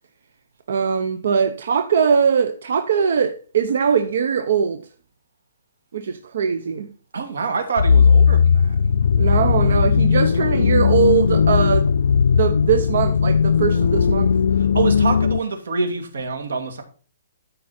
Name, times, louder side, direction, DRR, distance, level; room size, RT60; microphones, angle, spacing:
voice 1, 0.7-4.8 5.9-6.9 9.1-11.9 12.3-14.3, right 7 dB, 55° right, 0.8 m, -21 dB
voice 2, 7.1-8.8 14.5-16.8, right 4 dB, 75° right, 2.5 m, -26 dB
sound 1, 7.8-15.4, left 6 dB, 70° left, 0.3 m, -17 dB
13.0 x 5.4 x 4.3 m
hypercardioid pair, 175°, 0 cm